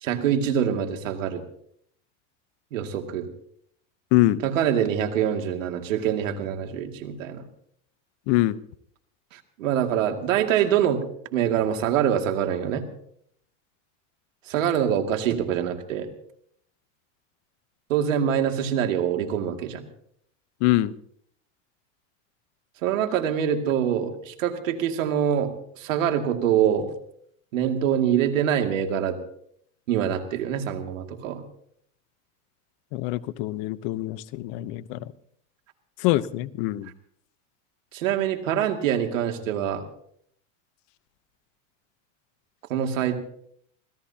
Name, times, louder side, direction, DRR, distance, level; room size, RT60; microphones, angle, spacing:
voice 1, 0.0-1.4 2.7-3.3 4.4-7.5 9.3-11.0 11.3-12.8 14.5-16.1 17.9-19.8 22.8-26.9 27.5-29.2 29.9-31.4 37.9-39.9 42.7-43.2, right 9 dB, 85° right, 5 dB, 2.5 m, -25 dB
voice 2, 4.1-4.4 8.3-8.6 20.6-20.9 32.9-35.1 36.0-36.9, left 17 dB, 55° left, 15 dB, 1.0 m, -24 dB
26.5 x 17.5 x 2.9 m, 0.66 s
supercardioid pair, 125°, 38 cm